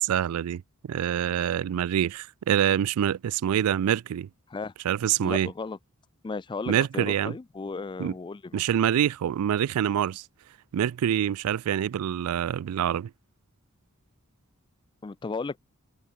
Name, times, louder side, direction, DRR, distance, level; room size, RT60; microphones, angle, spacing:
voice 1, 0.0-4.3 4.8-5.5 6.7-7.3 8.0-8.1 8.5-10.2 10.7-13.1, right 9 dB, 80° right, 0.3 m, -26 dB
voice 2, 5.2-5.8 6.2-8.6 15.0-15.6, left 4 dB, 20° left, 0.3 m, -35 dB
head